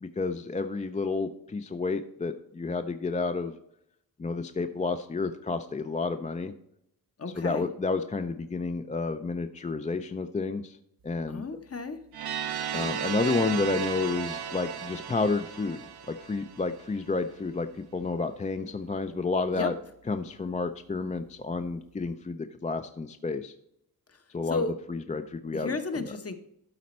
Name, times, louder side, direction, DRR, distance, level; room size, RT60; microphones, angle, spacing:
voice 1, 0.0-3.6 4.2-6.5 7.3-10.8 11.0-11.4 12.7-15.8 16.1-19.7 20.1-23.5 24.3-24.6 24.9-26.1, left 3 dB, 20° left, 8 dB, 0.3 m, -30 dB
voice 2, 7.2-7.7 11.3-12.0 19.5-19.7 24.5-24.7 25.5-26.3, left 3 dB, 40° left, 8 dB, 0.8 m, -33 dB
sound 1, 12.1-17.0, right 8 dB, 85° right, 0.7 m, -35 dB
12.0 x 4.2 x 4.2 m, 0.78 s
wide cardioid pair, 120°, 37 cm